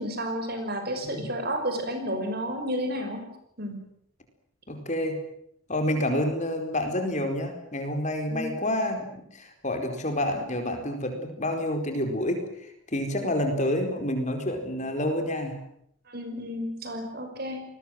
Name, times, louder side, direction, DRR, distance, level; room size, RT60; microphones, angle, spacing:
voice 1, 0.0-3.3 3.6-3.8 8.3-8.5 16.1-17.7, equal, 45° right, 7 dB, 5.7 m, -31 dB
voice 2, 4.7-5.2 5.7-15.6, left 1 dB, 35° left, 5 dB, 4.5 m, -28 dB
29.5 x 21.5 x 7.7 m, 0.72 s
head